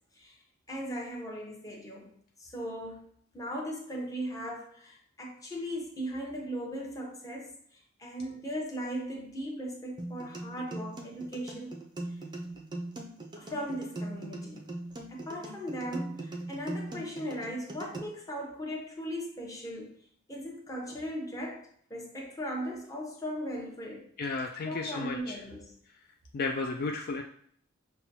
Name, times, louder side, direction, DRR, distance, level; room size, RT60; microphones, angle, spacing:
voice 1, 0.7-2.1 2.4-3.1 3.3-11.8 13.4-14.6 15.1-20.0 20.3-24.1 24.6-25.7, equal, 15° left, -2 dB, 0.8 m, -38 dB
sound 1, 10.0-18.0, right 2 dB, 20° right, 0.5 m, -40 dB
voice 2, 24.2-25.4 25.9-26.0 26.3-27.2, left 3 dB, 50° left, 1 dB, 0.3 m, -33 dB
5.7 x 2.2 x 2.7 m, 0.62 s
head